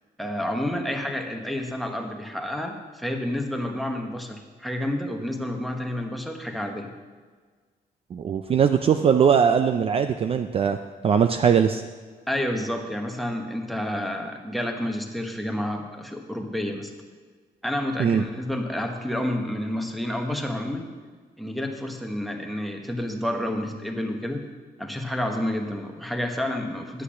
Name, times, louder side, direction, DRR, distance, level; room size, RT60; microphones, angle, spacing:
voice 1, 0.2-6.9 12.3-16.9 17.6-20.8 21.4-24.4 24.8-27.0, left 1 dB, ahead, 4 dB, 1.1 m, -29 dB
voice 2, 8.1-10.8 11.0-11.8 18.0-18.2, right 7 dB, 40° right, 8 dB, 0.4 m, -20 dB
10.0 x 8.2 x 6.1 m, 1.5 s
cardioid pair, 155°, 15 cm